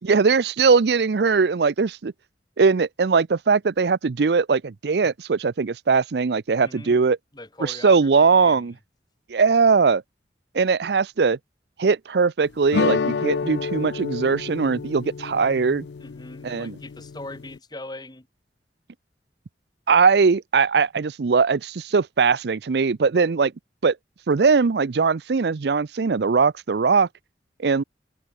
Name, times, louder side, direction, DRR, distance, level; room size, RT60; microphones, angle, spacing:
voice 1, 0.0-2.1 2.6-7.2 7.6-8.7 9.3-10.0 10.5-11.4 11.8-15.9 16.4-16.8 19.9-23.5 23.8-24.0 24.3-27.1 27.6-27.8, right 5 dB, 65° right, 0.5 m, -20 dB
voice 2, 6.6-7.0 7.3-8.7 16.0-18.3, left 2 dB, 25° left, 2.4 m, -40 dB
sound 1, 12.7-17.6, left 5 dB, 75° left, 0.4 m, -29 dB
open air
head